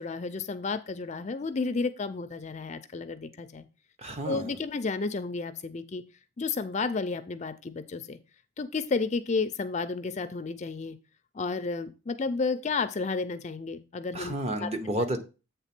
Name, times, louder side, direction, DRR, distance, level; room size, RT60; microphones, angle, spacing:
voice 1, 0.0-3.7 4.2-6.0 6.4-8.2 8.6-11.0 11.3-14.3 14.6-14.7, left 4 dB, 35° left, 10 dB, 0.4 m, -32 dB
voice 2, 4.0-4.5 14.1-15.2, right 1 dB, 30° right, 6 dB, 0.9 m, -31 dB
8.2 x 3.4 x 5.9 m, 0.32 s
head